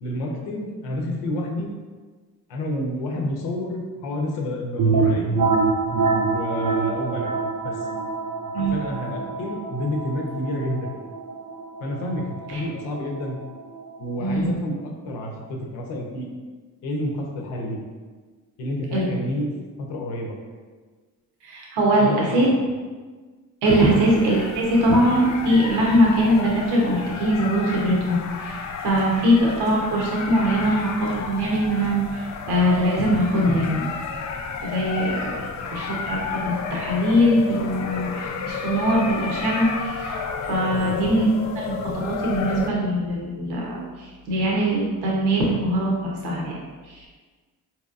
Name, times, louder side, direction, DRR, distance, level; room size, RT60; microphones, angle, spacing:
voice 1, 0.0-1.7 2.5-5.3 6.2-7.3 7.6-7.9 8.6-11.0 11.8-13.4 14.0-16.3 16.8-17.8 18.6-19.5 19.8-20.4 22.0-22.4 23.9-24.1 40.7-40.9, left 1 dB, 80° left, 0 dB, 0.8 m, -29 dB
sound 1, 4.8-14.3, right 4 dB, 50° right, 0.6 m, -26 dB
voice 2, 8.5-8.8 12.5-12.6 14.2-14.5 18.9-19.0 21.4-22.5 23.6-33.9 34.6-35.4 35.7-40.2 40.5-41.3 41.5-46.6 46.8-47.1, equal, 70° right, -3 dB, 0.9 m, -22 dB
sound 2, 23.6-42.7, left 5 dB, 45° left, 0.5 m, -32 dB
4.1 x 3.0 x 2.4 m, 1.4 s
hypercardioid pair, 50°, 41 cm